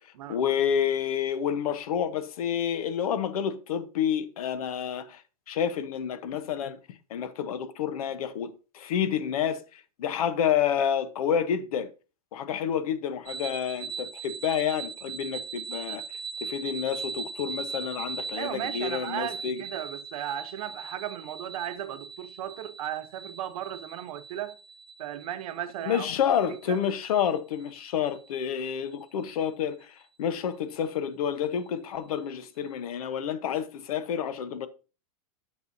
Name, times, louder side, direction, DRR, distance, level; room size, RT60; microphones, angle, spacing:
voice 1, 0.3-5.2 5.5-11.9 12.3-16.0 16.4-19.6 25.8-34.7, left 8 dB, 75° left, 1.1 m, -29 dB
sound 1, 13.3-28.8, right 5 dB, 25° right, 0.9 m, -40 dB
voice 2, 18.4-24.6 25.0-26.1 26.5-26.8, right 11 dB, 75° right, 0.9 m, -36 dB
10.5 x 7.0 x 2.7 m
supercardioid pair, 160°, 19 cm